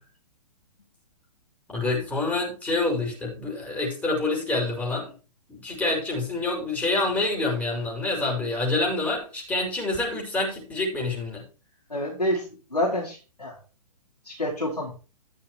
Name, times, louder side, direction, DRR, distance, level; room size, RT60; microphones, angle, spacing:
voice 1, 1.7-5.1 5.5-11.4, left 2 dB, 5° left, -3 dB, 5.6 m, -27 dB
voice 2, 11.9-12.4 12.7-13.5 14.2-14.9, left 1 dB, 85° left, -4 dB, 4.5 m, -27 dB
14.0 x 6.7 x 4.6 m, 0.34 s
figure-of-eight pair, 120°, 20 cm